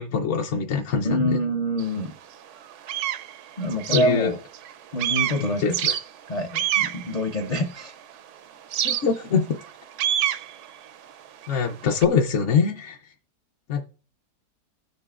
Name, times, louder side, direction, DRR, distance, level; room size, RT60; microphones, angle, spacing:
voice 1, 0.0-1.4 3.9-4.3 5.4-6.0 8.8-9.5 11.5-13.0 13.7-13.8, left 6 dB, 60° left, 0.8 m, -23 dB
voice 2, 1.0-2.1 3.6-4.4 4.9-5.8 6.3-7.9, equal, 85° left, 0.3 m, -26 dB
sound 1, 1.8-1.9 2.4-4.7 5.0-8.1 8.7-12.1, right 11 dB, 75° right, 0.7 m, -28 dB
16.0 x 6.7 x 2.4 m
omnidirectional pair, 1.7 m